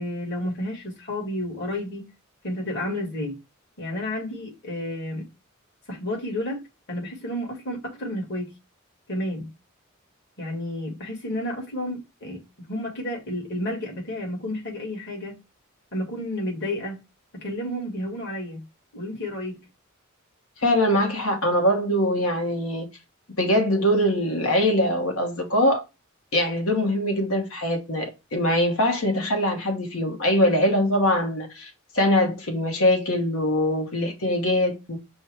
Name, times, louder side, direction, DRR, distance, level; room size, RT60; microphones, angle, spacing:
voice 1, 0.0-2.1 2.4-3.4 3.8-5.3 5.9-8.5 9.1-9.5 10.4-15.4 15.9-17.0 17.3-18.6 18.9-19.6, left 1 dB, 55° left, 1.9 m, -31 dB
voice 2, 20.6-22.9 23.4-25.8 26.3-31.7 31.9-35.0, left 1 dB, 80° left, 1.2 m, -22 dB
5.4 x 2.2 x 4.3 m
head